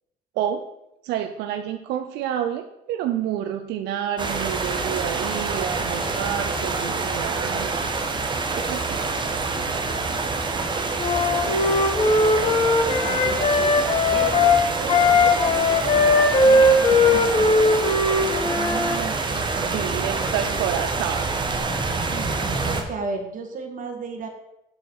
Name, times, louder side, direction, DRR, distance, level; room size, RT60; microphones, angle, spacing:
voice 1, 0.4-0.7 1.0-7.7 8.7-9.0 17.4-17.5 19.6-21.4, right 10 dB, 90° right, 6 dB, 0.6 m, -29 dB
sound 1, 4.2-22.8, right 3 dB, 25° right, 1.2 m, -26 dB
Wind instrument woodwind instrument, 11.0-19.0, left 2 dB, 30° left, 1.2 m, -19 dB
voice 2, 12.4-13.8 14.1-15.0 16.4-17.8 18.4-20.7 22.0-24.3, right 4 dB, 50° right, 3 dB, 1.7 m, -36 dB
7.1 x 6.5 x 4.6 m, 0.85 s
cardioid pair, 110°, 17 cm